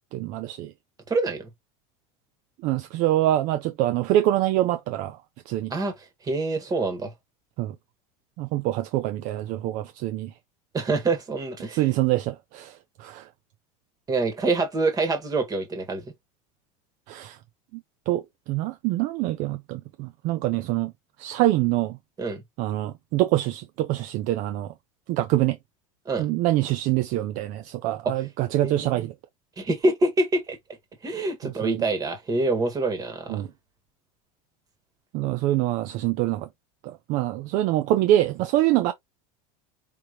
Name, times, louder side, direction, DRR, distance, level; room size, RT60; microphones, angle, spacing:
voice 1, 0.1-0.7 2.6-5.2 5.5-5.7 7.6-7.7 8.4-10.3 11.7-13.3 17.1-17.4 18.1-20.9 21.2-22.0 22.6-24.7 25.1-25.6 26.2-29.1 31.4-31.8 33.3-33.5 35.1-36.5 36.8-38.9, right 14 dB, 45° right, 0.5 m, -25 dB
voice 2, 1.1-1.5 5.7-5.9 6.2-7.1 10.7-11.8 14.1-16.1 22.2-22.4 26.0-26.3 28.6-29.1 29.6-30.6 31.0-33.4, right 2 dB, 20° right, 1.6 m, -26 dB
5.2 x 2.9 x 2.9 m
supercardioid pair, 150°, 18 cm